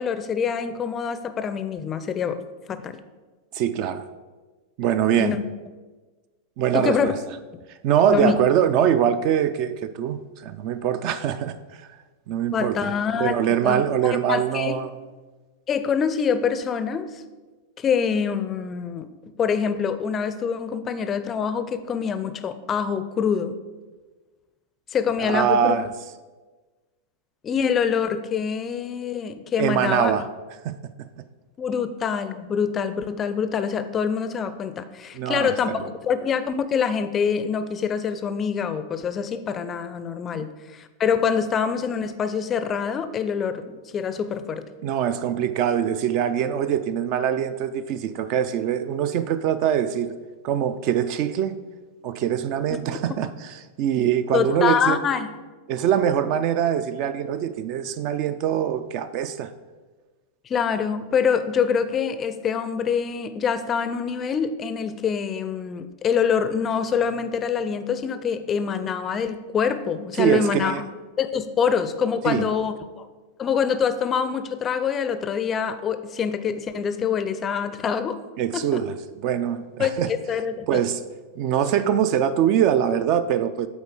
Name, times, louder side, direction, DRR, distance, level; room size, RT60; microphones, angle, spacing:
voice 1, 0.0-2.4 2.7-3.0 5.2-5.4 6.7-7.2 8.1-8.4 12.5-13.4 13.6-14.8 15.7-17.1 17.8-19.1 19.4-23.6 24.9-25.8 27.4-30.1 31.6-44.7 54.3-55.3 60.5-70.8 71.2-73.1 73.4-78.2 78.5-78.8 79.8-80.8, left 7 dB, 25° left, 11 dB, 0.4 m, -25 dB
voice 2, 3.5-4.1 4.8-5.4 6.6-7.2 7.8-11.6 12.3-12.9 13.2-14.9 25.2-25.9 29.6-30.3 30.6-30.8 35.1-35.5 40.3-40.4 44.8-50.1 50.4-51.6 52.0-55.0 55.7-59.5 70.2-70.8 72.2-72.5 78.4-78.9 79.2-80.1 80.7-81.0 81.4-83.7, right 9 dB, 45° right, 12 dB, 0.4 m, -23 dB
8.0 x 4.3 x 4.9 m, 1.3 s
figure-of-eight pair, 90°, 0 cm